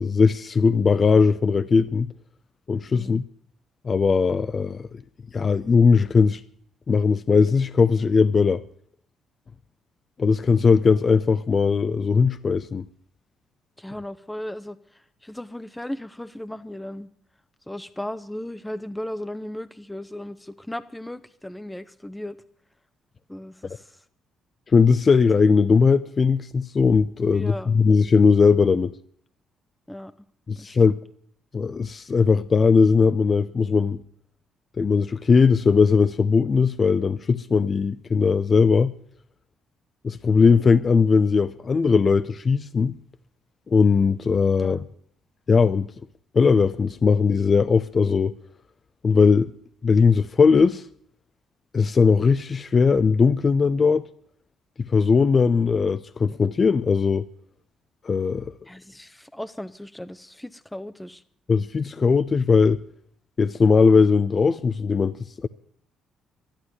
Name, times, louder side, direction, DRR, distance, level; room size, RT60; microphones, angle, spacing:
voice 1, 0.0-2.1 2.7-3.2 3.8-4.9 5.3-6.4 6.9-8.6 10.2-12.8 24.7-28.9 30.5-31.0 31.5-34.0 34.8-38.9 40.0-42.9 43.7-44.8 45.5-45.9 46.3-48.3 49.0-49.5 49.8-50.8 51.7-54.1 54.9-57.3 58.0-58.4 61.5-62.8 63.4-65.1 65.4-65.5, left 5 dB, 40° left, 0.6 m, -19 dB
voice 2, 13.8-17.1 17.7-22.4 23.3-24.0 27.3-27.7 29.9-30.1 30.6-31.0 44.6-44.8 58.7-61.2, left 1 dB, 10° left, 0.8 m, -36 dB
11.5 x 11.5 x 9.6 m
hypercardioid pair, 55°, 0 cm